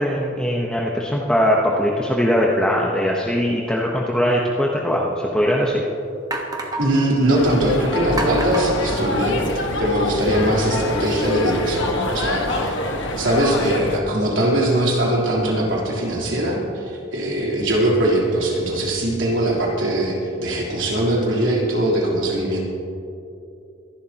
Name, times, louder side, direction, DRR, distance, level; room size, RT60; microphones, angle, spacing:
voice 1, 0.0-5.8 10.3-10.5, equal, 5° left, -3 dB, 0.9 m, -21 dB
sound 1, 4.9-5.0 5.7-5.8 6.3-7.1 8.2-9.7, right 2 dB, 20° right, 1.2 m, -29 dB
voice 2, 6.8-12.8 13.2-22.7, right 1 dB, 70° right, -4 dB, 3.5 m, -21 dB
sound 2, 7.3-14.0, left 2 dB, 65° left, 1.5 m, -25 dB
24.5 x 11.5 x 2.9 m, 2.7 s
head